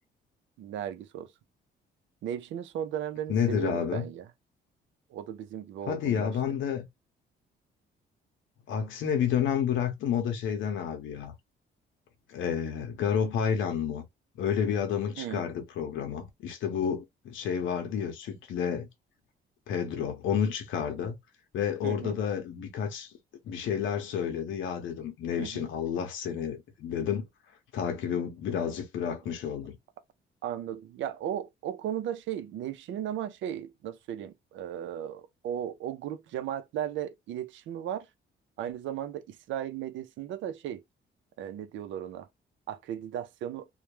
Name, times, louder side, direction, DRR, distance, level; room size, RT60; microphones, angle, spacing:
voice 1, 0.6-1.3 2.2-4.3 5.1-6.3 15.2-15.4 21.8-22.2 25.4-25.7 30.4-38.1 38.6-40.8 41.4-42.3 42.7-43.7, right 10 dB, 75° right, 0.4 m, -36 dB
voice 2, 3.3-4.0 5.9-6.9 8.7-11.3 12.3-14.0 14.4-18.9 19.7-21.1 21.5-23.1 23.4-27.2 27.7-29.8, left 8 dB, 75° left, 0.7 m, -30 dB
2.2 x 2.1 x 2.9 m
cardioid pair, 90°, 20 cm